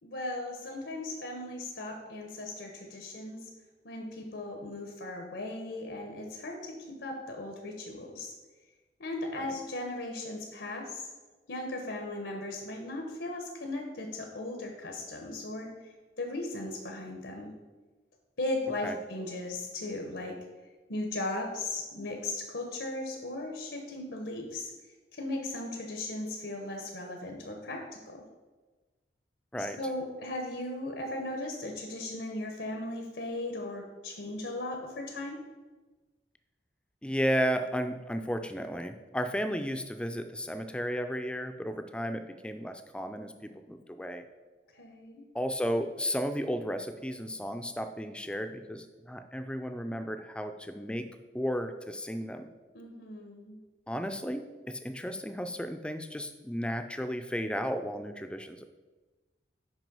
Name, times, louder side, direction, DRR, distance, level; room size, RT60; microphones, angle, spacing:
voice 1, 0.0-3.5 3.8-8.3 9.0-11.1 11.5-17.5 18.4-20.4 20.9-24.7 25.1-28.2 29.8-35.4 44.7-45.3 52.7-53.6, left 2 dB, 85° left, 2 dB, 1.0 m, -37 dB
voice 2, 37.0-44.2 45.3-51.1 51.3-52.5 53.9-58.7, equal, 5° left, 8 dB, 0.4 m, -34 dB
6.1 x 5.1 x 5.4 m, 1.3 s
head